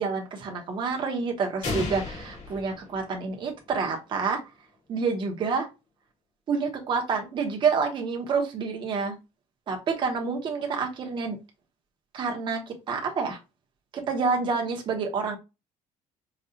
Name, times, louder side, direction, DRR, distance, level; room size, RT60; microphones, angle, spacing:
voice 1, 0.0-4.4 4.9-5.7 6.5-9.2 9.7-11.4 12.1-13.4 13.9-15.4, right 5 dB, 35° right, 0.9 m, -28 dB
sound 1, 1.6-3.5, left 3 dB, 65° left, 2.3 m, -34 dB
5.0 x 2.4 x 2.7 m
cardioid pair, 170°, 13 cm